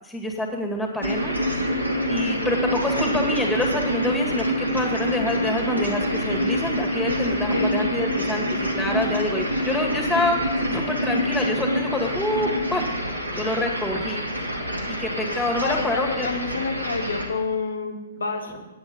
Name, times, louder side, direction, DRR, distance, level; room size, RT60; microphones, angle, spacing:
voice 1, 0.0-1.4 2.1-10.4 10.7-12.9 13.3-14.2 14.8-16.3, left 2 dB, 5° left, 1 dB, 2.0 m, -27 dB
sound 1, 1.0-17.3, equal, 90° right, 2.1 m, -26 dB
voice 2, 15.6-18.7, left 4 dB, 75° left, 5 dB, 1.5 m, -29 dB
9.2 x 9.1 x 5.3 m, 1.0 s
figure-of-eight pair, 115°, 0 cm